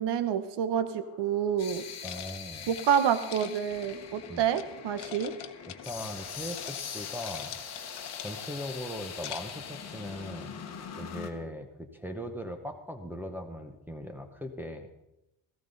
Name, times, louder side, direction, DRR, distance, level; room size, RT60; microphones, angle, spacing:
voice 1, 0.0-1.8 2.7-5.3, right 8 dB, 60° right, 11 dB, 1.1 m, -28 dB
sound 1, 0.7-11.3, left 7 dB, 35° left, 1.2 m, -42 dB
sound 2, 2.0-4.6 5.0-6.2 6.5-6.8 7.1-8.6 9.0-9.7, left 11 dB, 60° left, 0.9 m, -44 dB
voice 2, 2.0-2.7 4.3-4.4 5.7-10.5 11.0-14.9, equal, 5° right, 6 dB, 0.8 m, -40 dB
17.5 x 14.5 x 4.0 m, 0.91 s
cardioid pair, 175°, 47 cm